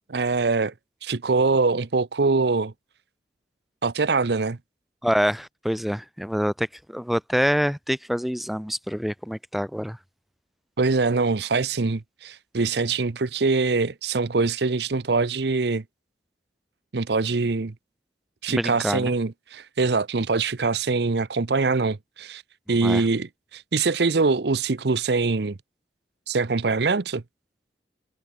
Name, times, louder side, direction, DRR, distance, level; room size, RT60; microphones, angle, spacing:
voice 1, 0.1-0.7 1.0-2.7 3.8-4.6 10.8-15.8 16.9-17.7 18.4-22.4 22.7-25.6 26.3-27.2, right 4 dB, 65° right, 0.7 m, -23 dB
voice 2, 5.0-10.0 18.5-19.1 22.8-23.0, equal, ahead, 0.5 m, -26 dB
head